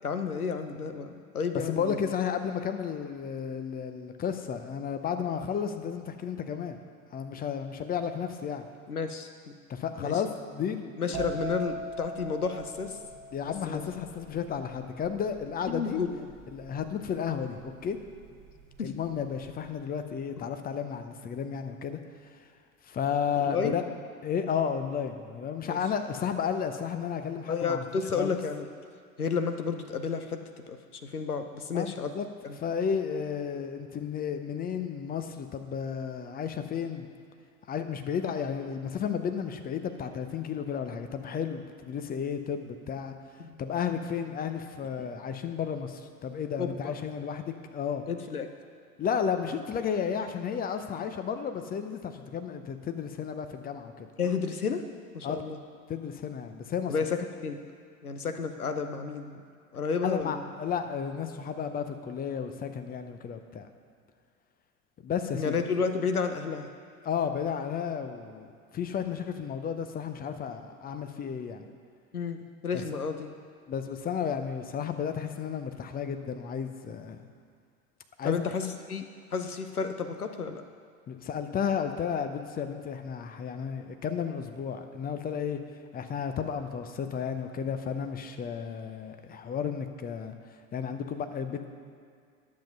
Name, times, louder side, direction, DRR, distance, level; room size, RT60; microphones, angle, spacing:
voice 1, 0.0-2.0 8.9-9.5 10.0-10.1 11.0-13.0 13.4-13.8 15.7-16.3 18.8-18.9 20.4-20.5 23.4-23.7 25.7-25.8 27.5-28.7 29.2-30.4 30.7-32.1 32.4-32.6 43.4-43.6 46.6-46.9 48.1-48.5 54.2-54.8 55.1-55.6 56.9-57.6 58.0-59.4 59.7-60.5 65.3-66.7 72.1-73.3 78.2-79.1 79.3-80.6, left 5 dB, 90° left, 7 dB, 0.8 m, -31 dB
voice 2, 1.6-6.8 7.1-8.7 9.7-10.9 13.3-16.0 16.5-18.0 18.8-22.0 22.3-22.4 22.8-23.8 24.2-27.9 28.2-28.4 31.7-32.3 32.6-37.1 37.7-43.1 43.6-48.0 49.0-54.1 55.2-55.4 55.9-56.9 60.0-63.7 65.0-65.5 67.0-68.5 68.7-71.7 72.7-72.8 73.7-77.2 78.2-78.4 81.1-85.6 85.9-90.3 90.7-91.6, left 7 dB, 20° left, 8 dB, 0.6 m, -33 dB
sound 1, 11.1-18.7 19.0-19.5, right 3 dB, 55° right, 1.5 m, -41 dB
10.5 x 7.5 x 5.4 m, 2.2 s
figure-of-eight pair, 80°, 43 cm